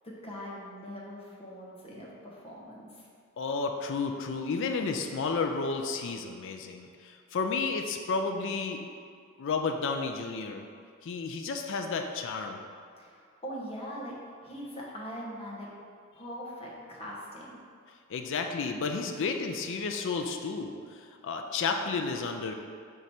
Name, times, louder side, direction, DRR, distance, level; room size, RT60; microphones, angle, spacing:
voice 1, 0.0-3.1 13.0-14.1 14.4-15.7 16.1-17.5, equal, 30° left, -5 dB, 1.2 m, -41 dB
voice 2, 3.4-8.8 9.4-10.6 11.0-12.6 18.1-22.5, left 4 dB, 60° left, 4 dB, 0.4 m, -32 dB
5.1 x 4.7 x 4.3 m, 2.2 s
head